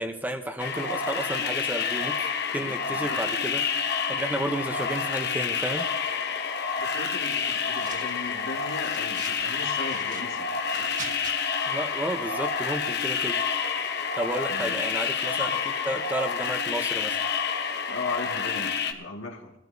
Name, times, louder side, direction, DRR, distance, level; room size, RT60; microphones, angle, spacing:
voice 1, 0.0-2.3 2.5-3.6 4.1-5.9 11.7-13.4 14.2-17.2, right 1 dB, 10° right, 6 dB, 0.8 m, -32 dB
sound 1, 0.6-18.9, left 6 dB, 55° left, 1.1 m, -29 dB
voice 2, 2.6-3.2 6.8-10.9 14.5-14.8 17.9-19.5, left 3 dB, 75° left, 2 dB, 1.9 m, -38 dB
sound 2, 7.3-8.3 8.6-9.4 9.8-11.3, right 4 dB, 40° right, 1.8 m, -43 dB
21.5 x 13.5 x 2.7 m, 0.90 s
head